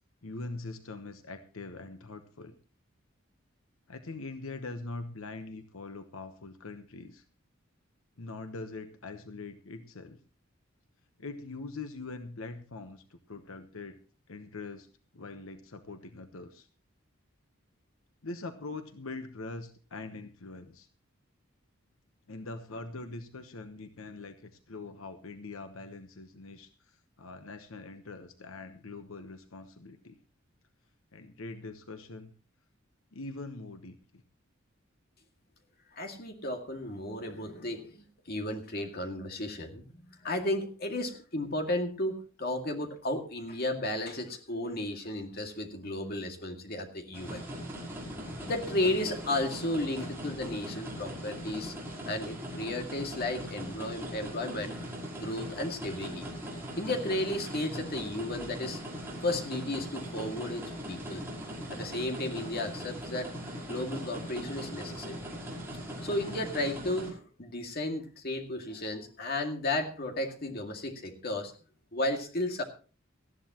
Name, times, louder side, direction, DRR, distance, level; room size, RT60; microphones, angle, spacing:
voice 1, 0.2-2.5 3.9-7.2 8.2-10.2 11.2-14.0 14.3-14.9 15.1-16.7 18.2-20.9 22.3-30.2 31.1-32.3 33.1-34.2, left 3 dB, 85° left, 8 dB, 1.1 m, -43 dB
voice 2, 35.9-47.4 48.5-51.7 52.0-54.7 55.2-56.3 56.8-58.8 59.2-61.3 61.7-63.3 63.7-65.2 66.0-71.5 71.9-72.6, left 1 dB, 50° left, 4 dB, 2.2 m, -34 dB
sound 1, 47.1-67.1, equal, 10° right, 5.5 m, -40 dB
19.0 x 13.5 x 3.0 m, 0.36 s
head